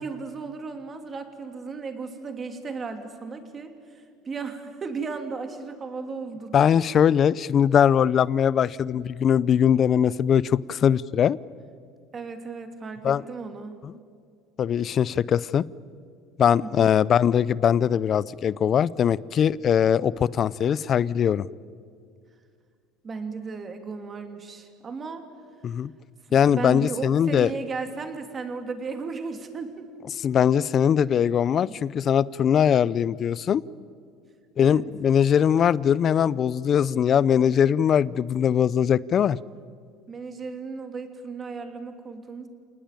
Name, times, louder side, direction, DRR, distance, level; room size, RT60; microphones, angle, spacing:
voice 1, 0.0-6.6 12.1-13.9 16.6-16.9 23.0-25.2 26.3-29.9 31.7-31.8 34.6-34.8 40.1-42.5, right 4 dB, 25° right, 7 dB, 2.7 m, -35 dB
voice 2, 6.5-11.4 13.0-13.2 13.8-13.9 14.6-15.7 16.4-21.5 25.6-25.9 26.3-27.5 30.1-33.6 34.6-39.4, left 8 dB, 40° left, 20 dB, 0.6 m, -21 dB
28.0 x 19.5 x 9.1 m, 2.2 s
supercardioid pair, 125°, 0 cm